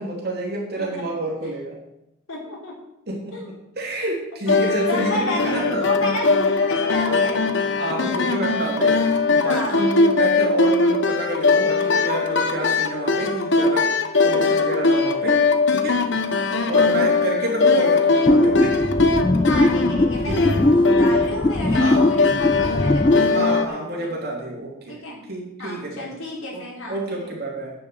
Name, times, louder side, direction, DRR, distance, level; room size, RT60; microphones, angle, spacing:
voice 1, 0.0-1.8 3.1-5.9 7.8-15.4 15.7-16.0 16.6-18.8 20.2-20.6 21.8-22.1 22.6-22.9 23.2-25.0 25.3-26.1 26.5-27.7, right 1 dB, 50° right, -2 dB, 3.1 m, -28 dB
voice 2, 0.8-1.1 2.3-2.7 3.3-3.5 4.9-7.4 9.3-9.9 14.2-14.5 16.3-17.1 19.5-24.1 24.9-25.2 25.6-27.0, left 1 dB, 75° left, -3 dB, 4.3 m, -31 dB
sound 1, 4.5-23.6, left 4 dB, 55° left, 1.0 m, -21 dB
sound 2, 18.3-23.3, left 1 dB, 20° left, 0.4 m, -19 dB
10.0 x 7.1 x 7.6 m, 0.86 s
head